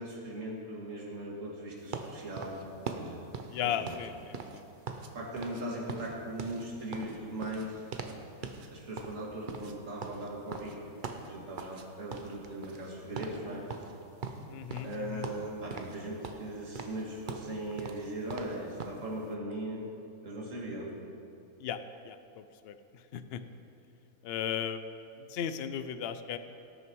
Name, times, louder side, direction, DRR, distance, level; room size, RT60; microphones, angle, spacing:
voice 1, 0.0-2.6 2.9-3.2 3.6-4.0 5.1-8.1 8.7-10.8 11.1-13.7 14.8-19.9 20.2-20.9, right 1 dB, 60° right, -3 dB, 2.3 m, -39 dB
sound 1, 1.9-5.1 5.4-5.6 5.9-8.2 8.4-8.7 9.0-11.8 12.1-12.9 13.2-13.4 13.7-15.0 15.2-16.0 16.2-19.0, right 4 dB, 45° right, 0.7 m, -41 dB
voice 2, 3.5-4.7 14.5-15.3 21.6-23.4 24.2-24.8 25.3-26.4, left 9 dB, 65° left, 11 dB, 0.6 m, -36 dB
18.0 x 6.5 x 4.6 m, 2.6 s
omnidirectional pair, 1.5 m